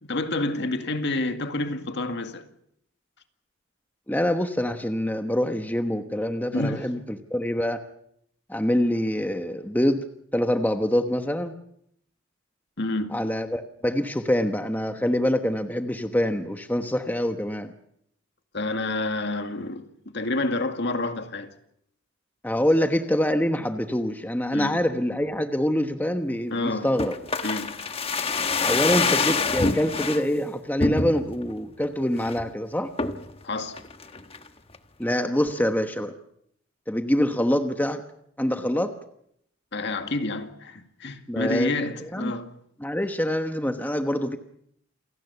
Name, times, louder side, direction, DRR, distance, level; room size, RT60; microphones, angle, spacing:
voice 1, 0.0-2.5 6.5-6.9 12.8-13.2 18.5-19.9 20.1-21.5 24.5-24.8 26.5-26.9 27.4-27.8 29.4-29.5 33.4-33.8 39.7-42.6, left 2 dB, 55° left, 2.0 m, -28 dB
voice 2, 4.1-7.8 8.5-10.0 10.3-11.5 13.1-17.7 22.4-27.1 28.6-32.9 35.0-36.1 36.9-38.0 38.4-38.9 41.3-41.7 42.0-42.3 42.8-44.4, equal, 10° left, 1.1 m, -25 dB
sound 1, 27.0-30.2 30.8-31.4 31.8-31.9 32.2-32.5 33.0-33.3 33.8-34.5 34.7-34.8, left 4 dB, 30° left, 1.3 m, -26 dB
28.5 x 18.0 x 7.0 m
head